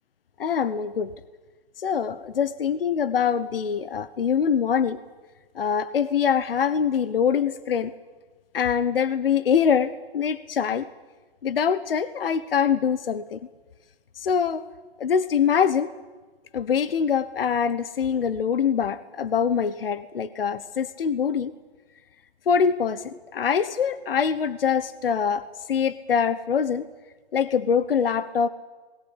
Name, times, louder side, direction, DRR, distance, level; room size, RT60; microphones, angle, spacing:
voice 1, 0.4-1.1 1.8-5.0 5.5-7.9 8.5-10.9 11.4-13.4 14.2-14.6 15.0-15.9 16.5-21.5 22.5-26.9 27.3-28.5, left 7 dB, 60° left, 15 dB, 1.1 m, -24 dB
20.5 x 18.0 x 9.9 m, 1.3 s
hypercardioid pair, 160°, 32 cm